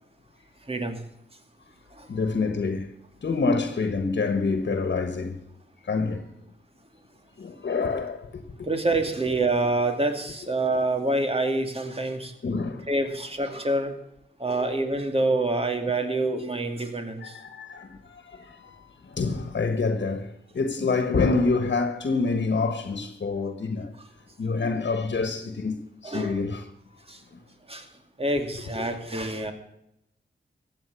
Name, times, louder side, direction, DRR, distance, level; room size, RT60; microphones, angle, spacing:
voice 1, 0.7-1.0 2.0-2.1 8.6-12.3 12.9-14.0 14.4-17.4 26.0-26.4 27.1-27.2 27.7-27.9 28.2-29.5, right 2 dB, 30° right, 2.5 m, -26 dB
voice 2, 2.1-2.9 3.2-5.4 5.8-6.3 7.4-8.5 12.4-12.9 17.2-23.9 24.4-26.6 28.7-28.8, left 4 dB, 65° left, 1.5 m, -27 dB
14.5 x 8.9 x 7.1 m
cardioid pair, 65°, 19 cm